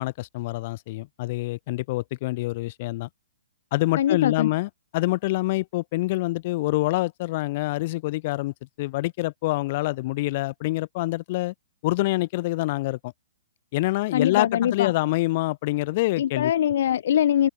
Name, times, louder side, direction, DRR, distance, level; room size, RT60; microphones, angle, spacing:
voice 1, 0.0-3.1 3.7-11.5 11.8-13.1 13.7-16.5, left 19 dB, 35° left, 3.0 m, -26 dB
voice 2, 4.0-4.5 14.1-14.9 16.2-17.5, left 10 dB, 55° left, 1.4 m, -22 dB
hypercardioid pair, 160°, 0 cm